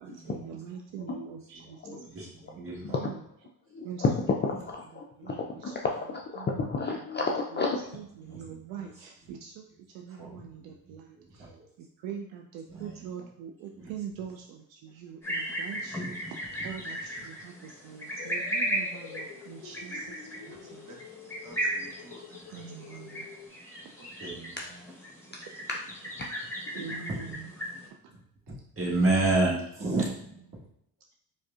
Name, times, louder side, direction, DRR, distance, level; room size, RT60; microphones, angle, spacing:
voice 1, 0.0-2.0 2.6-3.2 3.8-4.1 5.2-5.8 6.4-6.7 7.5-7.6 7.9-11.5 11.8-16.4 16.6-20.9 22.5-23.3 26.7-27.5 30.5-30.6, right 8 dB, 65° right, 2 dB, 0.5 m, -43 dB
voice 2, 2.0-3.0 8.2-8.9 10.1-11.7 12.7-13.0 13.8-13.9 16.6-16.7 20.5-20.7 24.2-24.6 27.1-27.2 28.5-30.6, right 2 dB, 25° right, -4 dB, 1.5 m, -31 dB
voice 3, 3.7-4.1 4.4-7.8 24.6-24.7 25.3-25.4 25.7-25.8 26.2-26.3 26.7-27.0, left 4 dB, 25° left, -1 dB, 0.4 m, -31 dB
sound 1, 15.2-27.9, right 1 dB, 5° left, 1.0 m, -36 dB
sound 2, 18.2-23.5, left 8 dB, 70° left, 0.6 m, -48 dB
voice 4, 21.4-23.0 24.0-24.3, right 2 dB, 45° right, 0 dB, 1.1 m, -53 dB
4.7 x 2.2 x 2.4 m, 0.76 s
hypercardioid pair, 55°, 49 cm